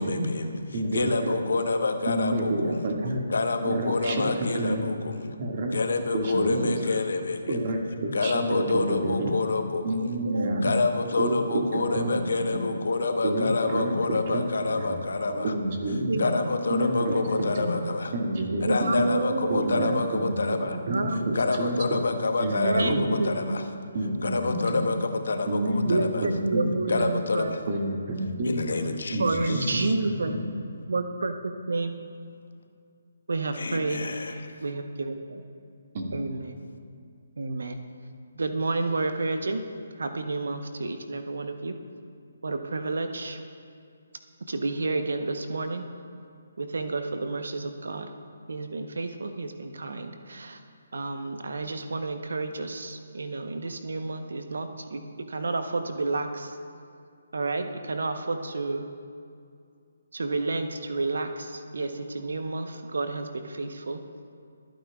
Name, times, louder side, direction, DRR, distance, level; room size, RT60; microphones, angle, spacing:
voice 1, 0.0-0.6 0.9-2.8 3.3-5.4 5.7-7.6 8.1-10.2 10.6-15.5 16.2-18.1 18.6-20.8 21.3-23.6 24.2-26.3 26.9-27.6 28.4-29.9 33.5-34.6, left 3 dB, 70° left, 6 dB, 1.1 m, -28 dB
voice 2, 0.7-1.4 2.1-3.2 3.6-4.9 5.4-5.8 6.1-6.8 7.5-9.3 9.8-10.7 11.2-12.2 12.5-12.6 13.2-14.9 15.4-16.3 16.7-17.7 18.1-18.9 19.5-20.4 20.9-22.0 22.4-23.2 23.9-24.8 25.5-26.7 27.7-28.7 29.1-30.4 35.9-36.1 36.4-36.5, right 1 dB, 45° right, 0 dB, 2.0 m, -28 dB
voice 3, 10.0-10.6 11.4-11.6 14.9-15.0 15.3-15.5 16.1-16.4 18.7-20.0 20.7-21.4 22.6-23.6 25.8-27.6 29.2-30.3 30.9-31.3 31.7-32.0 33.3-34.0 34.6-35.4 36.1-36.6 37.4-37.8 38.4-39.6 40.0-41.7 42.4-43.4 44.5-45.8 46.6-48.1 48.5-50.6 50.9-55.0 55.3-56.5 57.3-58.8 60.1-64.0, right 3 dB, 70° right, 7 dB, 0.9 m, -30 dB
25.5 x 9.1 x 2.4 m, 2.4 s
figure-of-eight pair, 145°, 0 cm